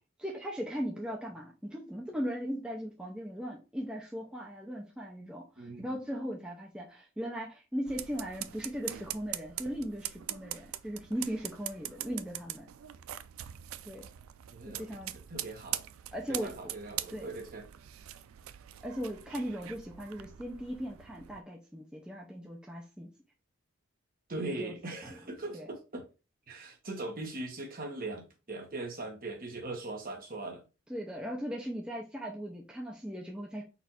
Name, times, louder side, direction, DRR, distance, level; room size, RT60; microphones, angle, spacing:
voice 1, 0.2-12.7 13.9-14.1 14.7-15.1 16.1-16.5 17.1-17.3 18.8-23.1 24.4-24.9 25.5-25.7 30.9-33.6, equal, 5° right, 0.5 m, -38 dB
voice 2, 5.6-6.0 14.5-14.9 15.1-15.8 16.3-17.7 24.3-26.1 26.5-30.6, right 2 dB, 45° right, 1.1 m, -40 dB
sound 1, 7.9-21.4, right 13 dB, 85° right, 0.4 m, -42 dB
4.1 x 2.5 x 4.2 m
head